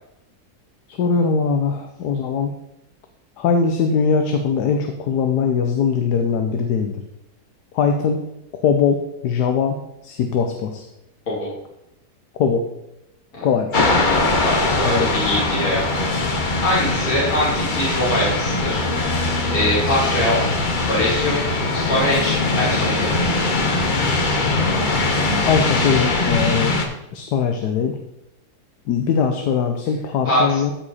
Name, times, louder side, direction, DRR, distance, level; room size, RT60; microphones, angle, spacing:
voice 1, 0.9-2.5 3.4-7.0 7.7-8.2 8.5-9.8 10.0-10.8 12.4-12.7 13.4-13.9 14.8-15.1 25.5-26.8 27.1-28.0 28.9-30.7, left 6 dB, 75° left, 5 dB, 1.3 m, -21 dB
sound 1, 13.7-26.8, left 2 dB, 35° left, 1.0 m, -21 dB
voice 2, 14.4-20.4 20.8-21.4 21.7-23.2 30.2-30.6, left 1 dB, 55° left, -7 dB, 3.6 m, -23 dB
13.5 x 4.9 x 4.2 m, 0.88 s
omnidirectional pair, 1.8 m